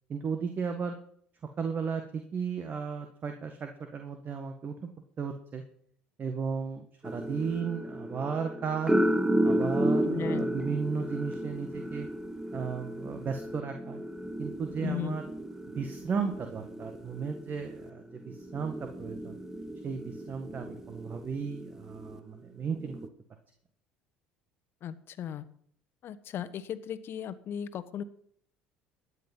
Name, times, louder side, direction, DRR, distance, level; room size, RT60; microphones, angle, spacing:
voice 1, 0.1-0.9 1.6-4.9 5.2-5.6 6.2-9.0 9.4-12.1 12.5-14.0 14.4-15.2 15.7-19.4 19.8-23.0, right 6 dB, 40° right, 6 dB, 1.7 m, -35 dB
sound 1, 7.0-22.2 22.8-23.1, right 1 dB, 10° right, 1.4 m, -33 dB
voice 2, 10.0-10.4 14.8-15.2 24.8-25.4 26.0-28.0, left 9 dB, 50° left, 13 dB, 1.3 m, -36 dB
14.0 x 9.8 x 5.6 m, 0.64 s
hypercardioid pair, 70°, 5 cm